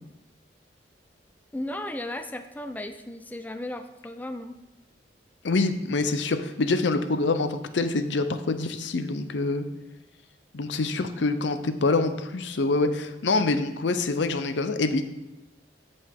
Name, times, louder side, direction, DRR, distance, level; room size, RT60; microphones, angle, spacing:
voice 1, 1.5-4.6, left 1 dB, 10° left, 8 dB, 0.4 m, -35 dB
voice 2, 5.4-9.6 10.5-15.0, left 3 dB, 75° left, 10 dB, 0.6 m, -25 dB
14.0 x 5.4 x 3.6 m, 1.0 s
head